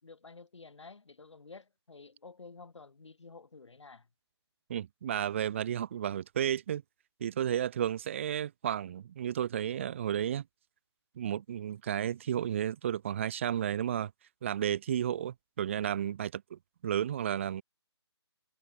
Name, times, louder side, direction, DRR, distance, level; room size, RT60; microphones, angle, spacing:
voice 1, 0.0-4.1, left 4 dB, 85° left, 6.3 m, -51 dB
voice 2, 4.7-6.8 7.2-10.4 11.2-14.1 14.4-17.6, right 10 dB, 25° right, 0.7 m, -32 dB
hypercardioid pair, 165°, 15 cm